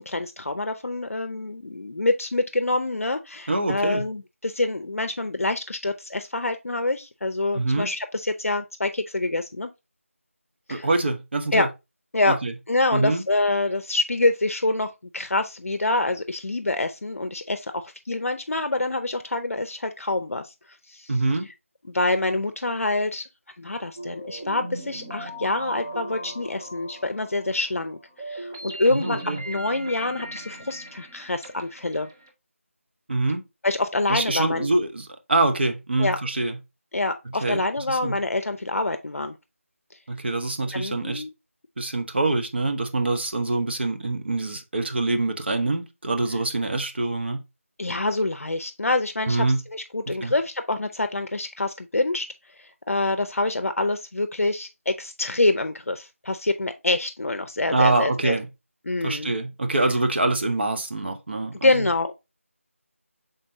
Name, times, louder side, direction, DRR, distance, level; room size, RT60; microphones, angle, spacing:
voice 1, 0.0-9.7 10.7-10.9 11.5-11.7 12.1-12.4 12.7-20.5 20.9-21.1 21.9-23.3 23.6-28.0 28.3-29.2 29.5-32.1 33.6-34.7 36.0-36.2 36.9-39.4 40.7-41.3 47.8-49.4 49.7-52.3 52.6-58.4 58.9-59.3 61.6-62.1, left 2 dB, 70° left, 0.5 m, -26 dB
voice 2, 3.5-4.1 7.5-7.9 10.7-11.7 12.3-12.5 12.9-13.2 21.1-21.5 28.9-29.4 33.1-33.4 34.1-36.6 37.4-37.6 37.9-38.2 40.1-41.2 41.8-47.4 49.3-49.6 50.1-50.3 57.7-58.5 59.0-61.9, right 2 dB, 45° right, 0.8 m, -25 dB
sound 1, 24.0-32.3, right 1 dB, 15° right, 0.4 m, -38 dB
5.1 x 3.8 x 2.6 m
figure-of-eight pair, 165°, 8 cm